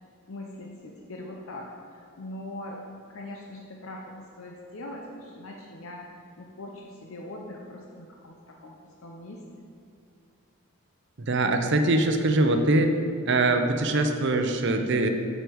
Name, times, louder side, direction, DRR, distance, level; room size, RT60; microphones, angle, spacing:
voice 1, 0.3-6.1 6.4-9.7, left 1 dB, 75° left, 0 dB, 0.7 m, -41 dB
voice 2, 11.2-12.9 13.3-15.1, right 2 dB, 55° right, 6 dB, 0.7 m, -23 dB
8.0 x 6.6 x 4.7 m, 2.6 s
head